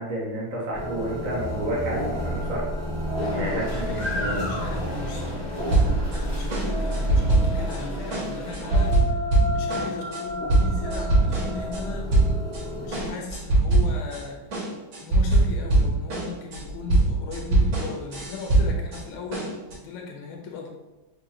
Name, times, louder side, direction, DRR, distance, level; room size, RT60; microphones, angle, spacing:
voice 1, 0.0-2.7 3.3-4.5, right 1 dB, 90° right, -4 dB, 0.4 m, -30 dB
sound 1, 0.7-13.1, equal, 30° right, 0.5 m, -31 dB
sound 2, 3.1-8.9, left 1 dB, 40° left, 0.6 m, -35 dB
voice 2, 3.2-5.8 6.1-9.2 9.5-12.4 12.7-14.6 15.0-20.7, left 4 dB, 90° left, 0 dB, 1.6 m, -37 dB
sound 3, 5.7-6.2 6.5-7.8 8.1-11.8 12.1-12.6 12.9-14.2 14.5-19.0 19.3-19.7, right 2 dB, 65° right, 1.9 m, -22 dB
4.9 x 2.3 x 2.9 m, 1.0 s
omnidirectional pair, 2.3 m